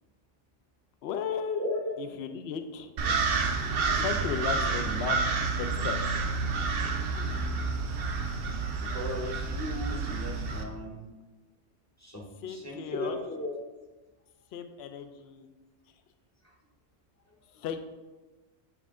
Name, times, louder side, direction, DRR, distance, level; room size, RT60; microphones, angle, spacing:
voice 1, 1.0-1.7 2.0-2.9 3.9-5.2 5.5-6.0 12.4-13.2 14.5-15.5 17.5-17.8, left 7 dB, 65° left, 8 dB, 0.7 m, -35 dB
voice 2, 1.5-1.9 3.0-3.1 8.8-11.1 12.0-13.5 17.5-17.6, left 1 dB, 15° left, -1 dB, 0.6 m, -36 dB
sound 1, 3.0-10.6, right 4 dB, 55° right, 0.7 m, -29 dB
8.4 x 3.2 x 3.6 m, 1.2 s
omnidirectional pair, 1.3 m